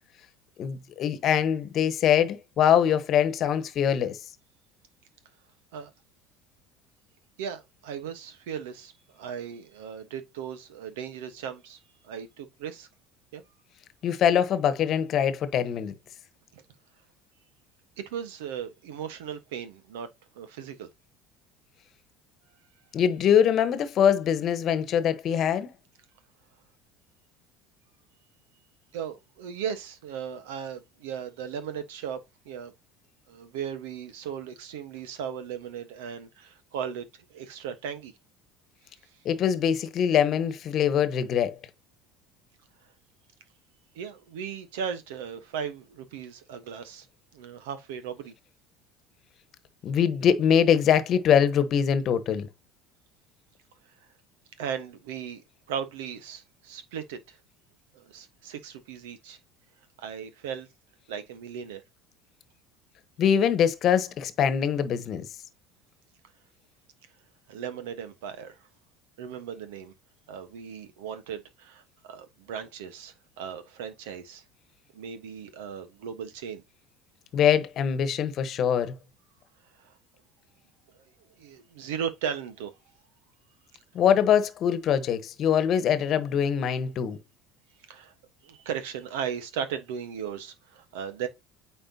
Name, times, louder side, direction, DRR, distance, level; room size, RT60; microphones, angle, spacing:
voice 1, 0.6-4.2 14.0-15.9 22.9-25.7 39.2-41.6 49.8-52.5 63.2-65.3 77.3-78.9 83.9-87.2, left 8 dB, 50° left, 1.2 m, -23 dB
voice 2, 7.4-11.8 12.0-12.9 13.3-13.4 16.5-16.6 18.0-20.1 20.3-20.9 28.9-32.7 33.3-38.1 43.9-47.1 47.3-48.3 54.6-55.4 55.7-57.4 57.9-59.4 60.0-60.7 61.1-61.8 67.5-68.6 69.2-69.9 70.3-74.4 74.9-76.6 79.8-79.9 81.4-82.7 87.9-88.1 88.4-91.3, right 8 dB, 75° right, 1.2 m, -37 dB
8.9 x 4.5 x 2.8 m
hypercardioid pair, 75°, 0 cm